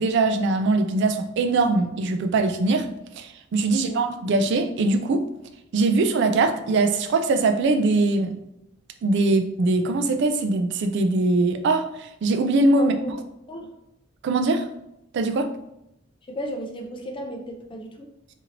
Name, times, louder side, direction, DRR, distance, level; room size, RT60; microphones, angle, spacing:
voice 1, 0.0-2.9 3.2-5.2 5.7-8.4 9.0-11.9 12.2-12.9 14.2-14.6 15.1-15.5, right 3 dB, 60° right, 8 dB, 0.3 m, -21 dB
voice 2, 3.7-4.0 12.8-13.2 13.5-13.7 16.3-18.1, equal, 25° left, 2 dB, 0.4 m, -34 dB
2.8 x 2.6 x 2.8 m, 0.81 s
head